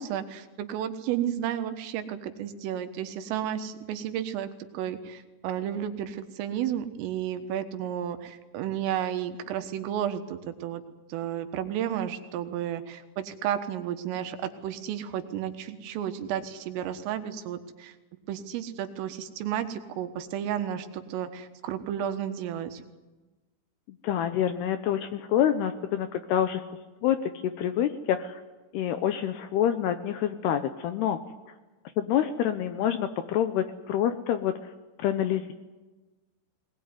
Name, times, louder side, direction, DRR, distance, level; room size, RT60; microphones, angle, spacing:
voice 1, 0.0-10.8 11.1-17.9 18.3-22.8, right 10 dB, 90° right, 8 dB, 4.0 m, -32 dB
voice 2, 24.0-26.6 27.0-27.2 27.6-28.4 28.7-31.2 32.0-34.5 35.0-35.5, left 10 dB, 80° left, 9 dB, 2.4 m, -27 dB
20.5 x 20.0 x 9.5 m, 1.2 s
omnidirectional pair, 5.7 m